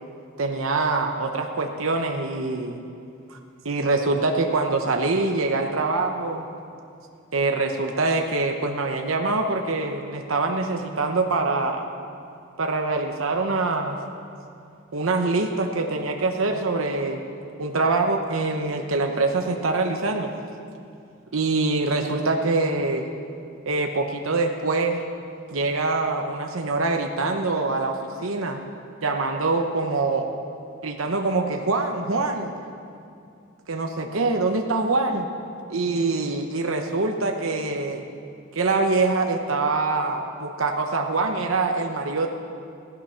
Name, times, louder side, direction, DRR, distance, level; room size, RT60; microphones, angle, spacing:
voice 1, 0.4-2.8 3.3-3.4 3.6-6.5 7.3-11.9 12.6-14.0 14.9-17.2 17.6-20.3 21.3-23.1 23.7-25.0 25.5-28.6 29.0-30.3 30.8-32.5 33.7-35.3 35.7-38.0 38.5-42.3, right 3 dB, 70° right, 3 dB, 1.0 m, -24 dB
16.0 x 12.0 x 5.7 m, 2.5 s
head